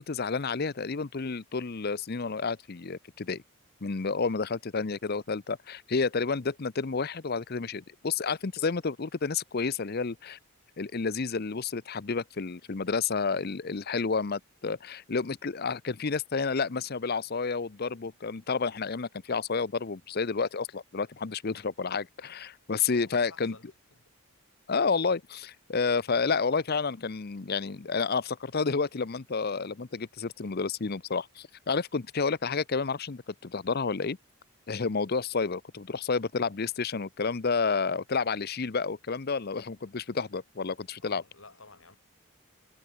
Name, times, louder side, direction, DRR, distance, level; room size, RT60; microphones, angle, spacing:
voice 1, 0.0-3.4 3.8-10.4 10.8-23.5 24.7-34.2 34.7-41.2, left 4 dB, 45° left, 0.7 m, -30 dB
voice 2, 22.9-24.1 41.0-42.0, left 3 dB, 65° left, 7.6 m, -52 dB
head